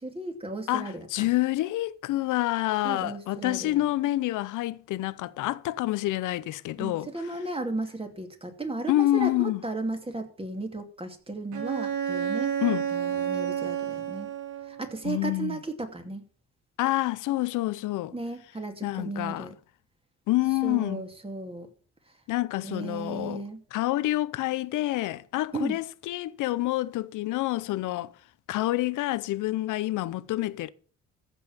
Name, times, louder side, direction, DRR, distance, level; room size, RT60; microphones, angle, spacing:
voice 1, 0.0-1.3 2.8-3.8 6.8-12.6 12.9-14.3 14.7-16.2 18.1-19.6 20.6-21.7 22.6-23.6 25.5-25.8, right 2 dB, 20° right, 2.8 m, -35 dB
voice 2, 0.7-7.1 8.9-9.6 12.6-12.9 15.0-15.6 16.8-18.1 18.8-19.5 20.3-21.0 22.3-23.4 23.7-28.1 28.5-30.7, left 16 dB, 90° left, 0.7 m, -27 dB
Bowed string instrument, 11.5-15.0, right 8 dB, 80° right, 2.4 m, -30 dB
14.5 x 5.5 x 7.1 m
cardioid pair, 90°, 30 cm